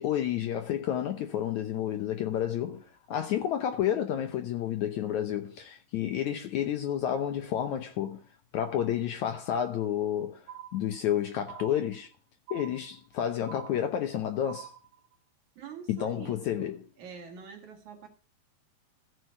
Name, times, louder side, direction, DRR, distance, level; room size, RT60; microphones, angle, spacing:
voice 1, 0.0-8.2 8.5-12.1 12.5-14.7 15.9-16.8, left 10 dB, 85° left, 1.6 m, -30 dB
sound 1, 10.5-11.2 11.5-12.2 12.5-13.2 13.5-14.2 14.5-15.2, right 10 dB, 75° right, 3.3 m, -46 dB
voice 2, 15.6-18.1, right 6 dB, 55° right, 2.7 m, -46 dB
14.5 x 6.2 x 7.8 m
omnidirectional pair, 4.7 m